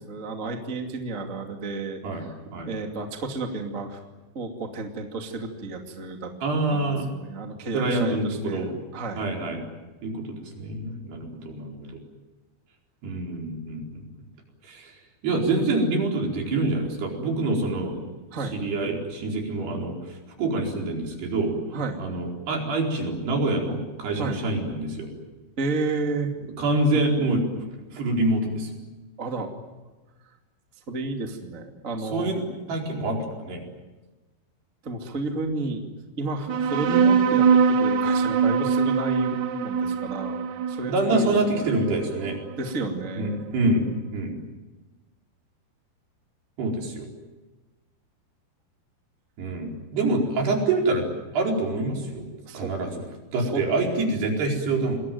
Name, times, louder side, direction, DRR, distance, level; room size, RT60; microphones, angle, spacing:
voice 1, 0.0-2.4 2.6-4.0 4.3-6.3 6.7-9.3 18.3-18.5 21.7-22.0 24.2-24.4 25.6-26.3 29.2-29.5 30.9-32.3 34.8-35.8 36.2-41.7 42.6-43.4 52.5-52.7 53.4-53.6, right 3 dB, 25° right, 3 dB, 1.9 m, -32 dB
voice 2, 6.4-7.0 7.7-8.7 9.2-9.6 10.0-11.9 13.0-14.0 14.6-14.9 15.2-18.0 18.4-21.5 22.0-25.1 26.6-27.4 27.9-28.7 32.1-33.6 40.9-42.4 43.2-43.9 44.1-44.4 46.6-47.1 49.4-51.1 51.3-52.3 52.5-52.9 53.3-55.0, right 2 dB, 60° right, 1 dB, 6.5 m, -26 dB
sound 1, 36.5-43.4, right 6 dB, 90° right, 1.6 m, -23 dB
27.5 x 21.0 x 9.3 m, 1.2 s
omnidirectional pair, 5.3 m